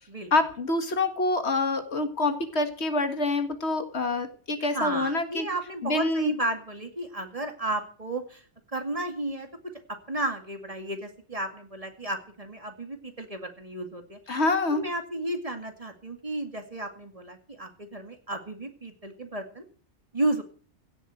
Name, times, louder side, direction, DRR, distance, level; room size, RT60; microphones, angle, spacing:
voice 1, 0.3-5.5 5.8-6.3 14.3-14.8, left 2 dB, 65° left, 8 dB, 2.0 m, -26 dB
voice 2, 4.7-8.5 8.7-9.5 9.9-14.2 14.7-19.7 20.1-20.4, right 1 dB, 30° right, 5 dB, 2.2 m, -33 dB
16.5 x 7.4 x 7.8 m, 0.43 s
omnidirectional pair, 1.2 m